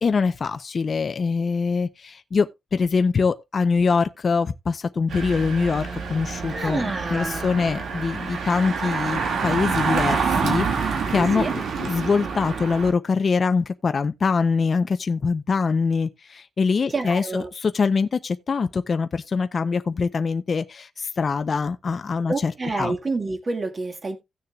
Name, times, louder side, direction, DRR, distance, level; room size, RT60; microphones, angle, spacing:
voice 1, 0.0-23.0, left 5 dB, 40° left, 0.6 m, -24 dB
Engine, 5.1-12.9, right 5 dB, 90° right, 2.0 m, -27 dB
voice 2, 6.5-7.5 11.1-11.5 16.9-17.5 22.3-24.2, right 3 dB, 30° right, 1.8 m, -28 dB
17.0 x 6.8 x 2.3 m
wide cardioid pair, 155°, 0 cm